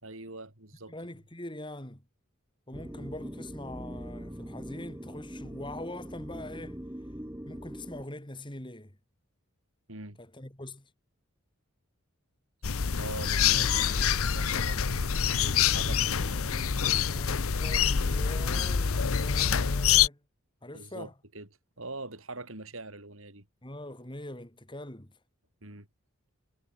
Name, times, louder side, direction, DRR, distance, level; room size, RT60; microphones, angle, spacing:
voice 1, 0.0-0.9 9.9-10.2 13.0-16.5 20.7-21.1 21.3-21.5 21.8-23.4 25.6-25.9, right 2 dB, 70° right, 6.3 m, -43 dB
voice 2, 0.9-2.0 2.7-6.8 7.4-9.0 10.2-10.9 15.4-20.2 20.6-21.1 23.6-25.2, left 1 dB, 20° left, 2.8 m, -43 dB
sound 1, 2.7-8.0, equal, 10° right, 1.2 m, -42 dB
sound 2, 12.6-20.1, left 7 dB, 80° left, 0.8 m, -26 dB
head